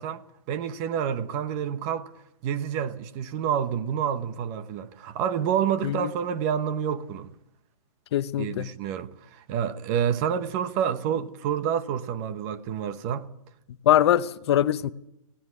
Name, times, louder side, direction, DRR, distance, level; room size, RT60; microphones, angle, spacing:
voice 1, 0.0-2.1 2.4-7.3 8.4-13.3, right 8 dB, 25° right, 1.0 m, -28 dB
voice 2, 8.1-8.7 13.9-14.9, left 11 dB, 45° left, 0.8 m, -22 dB
17.5 x 16.0 x 9.4 m
hypercardioid pair, 155°, 19 cm